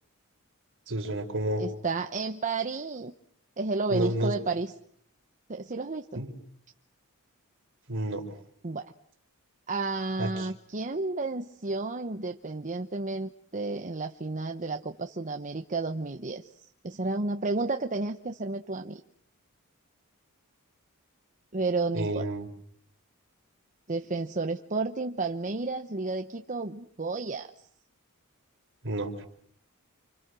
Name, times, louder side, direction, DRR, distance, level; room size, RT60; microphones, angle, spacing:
voice 1, 0.9-1.6 3.9-4.3 6.1-6.3 7.9-8.2 10.2-10.5 21.9-22.5 28.8-29.3, right 1 dB, 60° right, 4 dB, 4.4 m, -30 dB
voice 2, 1.6-3.1 3.6-4.7 5.5-6.2 8.6-8.9 9.7-19.0 21.5-22.3 23.9-27.5, right 3 dB, 35° right, 6 dB, 1.0 m, -32 dB
30.0 x 26.0 x 6.3 m, 0.63 s
head